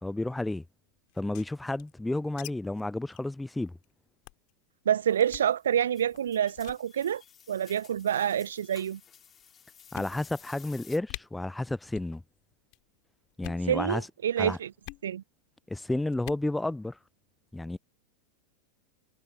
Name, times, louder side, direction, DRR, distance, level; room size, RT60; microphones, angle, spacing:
voice 1, 0.0-0.6 1.2-3.7 9.9-12.2 13.4-14.1 14.4-14.6 15.7-17.0 17.5-17.8, left 2 dB, 5° left, 0.5 m, -31 dB
sound 1, 1.1-2.5 2.8-2.9 3.1-3.3 3.7-3.8 4.2-4.5 5.2-5.5 6.1-6.3 6.6-6.8 7.7-8.1 8.9-9.0 9.4-9.5 9.9-10.5 10.8-10.9 11.1-11.2 11.9-12.2 12.4-12.8 13.3-13.7 14.8-15.1 16.1-16.5, left 29 dB, 45° left, 3.4 m, -45 dB
voice 2, 4.9-7.2 7.5-9.0 13.7-14.7 15.0-15.2, right 9 dB, 65° right, 0.9 m, -27 dB
sound 2, 5.1-11.0, left 8 dB, 25° left, 5.4 m, -55 dB
figure-of-eight pair, 90°, 0 cm